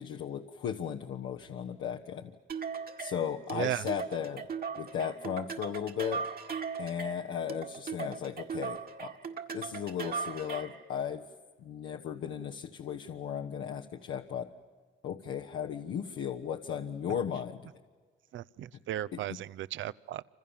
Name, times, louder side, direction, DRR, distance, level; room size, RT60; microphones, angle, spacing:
voice 1, 0.0-2.3 3.0-4.5 4.8-6.2 6.8-9.2 9.5-11.2 11.6-14.5 15.0-17.7 19.1-19.4, left 8 dB, 80° left, 2 dB, 1.3 m, -36 dB
sound 1, 2.5-10.8, right 6 dB, 50° right, 1.9 m, -38 dB
voice 2, 3.5-3.8 18.3-20.2, right 12 dB, 75° right, 18 dB, 0.7 m, -35 dB
28.5 x 26.5 x 7.3 m, 1.5 s
cardioid pair, 90°, 20 cm